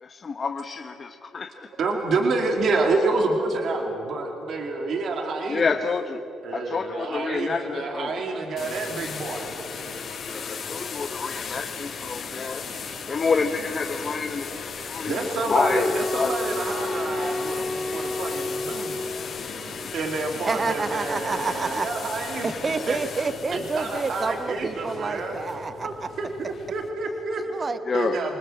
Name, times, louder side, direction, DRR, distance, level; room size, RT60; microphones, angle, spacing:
voice 1, 0.0-1.7 5.5-6.2 6.5-8.2 10.3-12.6 13.1-16.5 27.9-28.2, left 5 dB, 40° left, 6 dB, 1.0 m, -28 dB
voice 2, 1.8-5.7 6.4-9.5 15.1-18.9 19.9-23.0 23.5-25.4 25.8-27.4 27.9-28.4, right 3 dB, 60° right, 2 dB, 2.4 m, -28 dB
sound 1, 8.6-26.9, left 5 dB, 55° left, 4.2 m, -36 dB
sound 2, 15.5-19.5, left 2 dB, 20° left, 1.7 m, -30 dB
voice 3, 20.5-21.9 22.4-26.1 27.4-27.8, right 4 dB, 35° right, 11 dB, 0.8 m, -28 dB
27.5 x 20.0 x 7.7 m, 2.9 s
cardioid pair, 90°, 0 cm